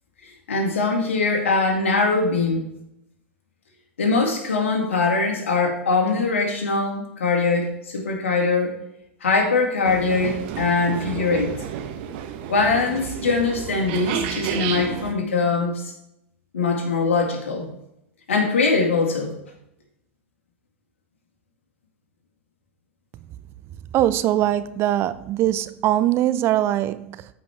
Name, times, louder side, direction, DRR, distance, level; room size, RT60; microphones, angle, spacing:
voice 1, 0.2-2.7 4.0-8.8 9.2-11.5 12.5-15.8 16.5-17.7 18.3-19.4, left 4 dB, 75° left, 2.1 m, -22 dB
sound 1, 9.8-15.1, right 9 dB, 55° right, 0.9 m, -31 dB
voice 2, 23.9-27.3, right 13 dB, 40° right, 0.5 m, -22 dB
14.0 x 5.1 x 3.5 m
figure-of-eight pair, 90°, 7 cm